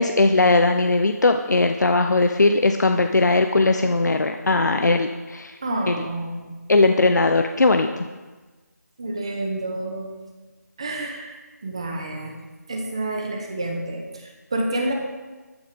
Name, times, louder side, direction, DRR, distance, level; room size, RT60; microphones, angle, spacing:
voice 1, 0.0-5.5 5.9-6.0 6.7-8.0, left 3 dB, 70° left, 6 dB, 0.8 m, -19 dB
voice 2, 5.6-6.6 9.0-10.1 10.8-11.4 11.6-12.3 12.7-14.9, right 1 dB, 20° right, 2 dB, 1.0 m, -29 dB
11.0 x 10.0 x 5.3 m, 1.3 s
figure-of-eight pair, 180°, 10 cm